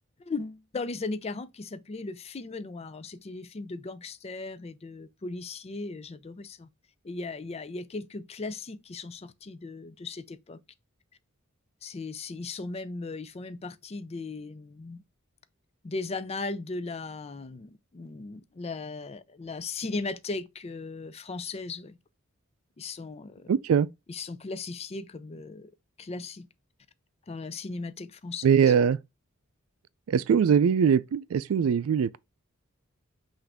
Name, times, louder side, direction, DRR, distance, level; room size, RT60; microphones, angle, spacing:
voice 1, 0.2-6.7 7.0-10.6 11.8-15.0 15.8-22.0 22.8-23.5 24.1-25.7 26.0-26.5 27.3-28.7, left 3 dB, 30° left, 0.4 m, -37 dB
voice 2, 23.5-23.9 28.4-29.0 30.1-32.2, right 7 dB, 90° right, 0.3 m, -22 dB
5.8 x 2.6 x 3.4 m
head